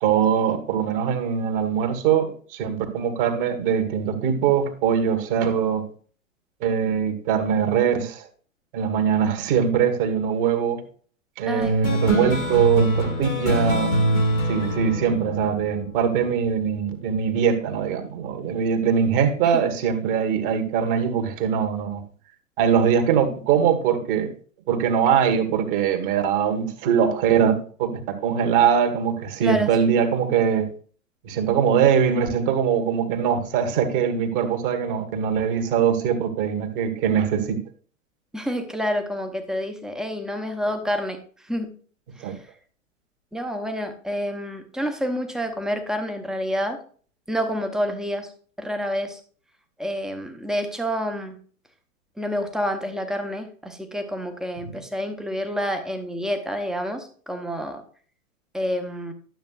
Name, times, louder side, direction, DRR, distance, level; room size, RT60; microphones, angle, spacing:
voice 1, 0.0-5.9 6.6-8.2 8.7-10.8 11.4-14.0 14.5-22.0 22.6-24.3 24.7-30.7 31.2-37.6 42.2-42.4 54.6-54.7, right 7 dB, 40° right, 1.8 m, -22 dB
voice 2, 11.5-11.8 19.4-19.7 29.4-29.7 38.3-41.2 41.4-41.7 42.2-42.4 43.3-46.8 47.3-48.3 48.6-49.2 49.8-51.4 52.2-57.8 58.5-59.1, equal, ahead, 0.9 m, -28 dB
sound 1, 11.6-16.5, equal, 90° left, 2.3 m, -24 dB
12.0 x 7.2 x 2.4 m
figure-of-eight pair, 105°, 41 cm